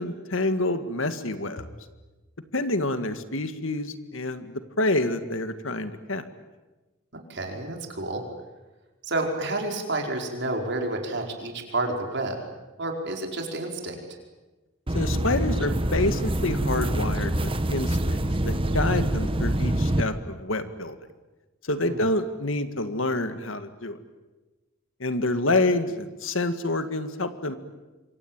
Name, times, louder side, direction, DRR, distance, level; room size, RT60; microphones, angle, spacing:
voice 1, 0.0-1.7 2.5-6.3 14.9-21.0 21.6-24.0 25.0-27.6, left 2 dB, 70° left, 10 dB, 2.0 m, -27 dB
voice 2, 7.1-8.2 9.0-12.4 12.8-14.0 21.8-22.1, right 2 dB, 60° right, 2 dB, 5.0 m, -30 dB
sound 1, 14.9-20.0, right 1 dB, 25° right, 1.2 m, -25 dB
27.0 x 24.0 x 9.1 m, 1.2 s
head